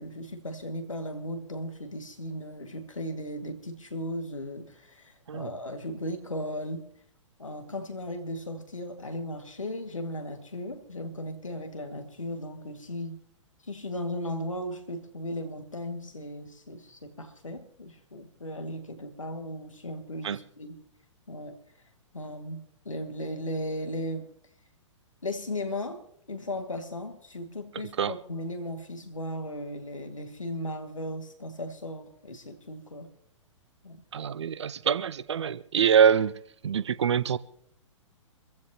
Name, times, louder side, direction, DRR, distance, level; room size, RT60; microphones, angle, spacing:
voice 1, 0.0-6.9 7.4-13.2 13.7-20.8 21.3-21.6 22.1-24.3 25.2-33.1 33.8-34.0, left 1 dB, 80° left, 2.2 m, -36 dB
voice 2, 34.1-36.3 36.6-37.4, right 8 dB, 60° right, 0.7 m, -24 dB
25.0 x 15.0 x 3.0 m
figure-of-eight pair, 115°, 16 cm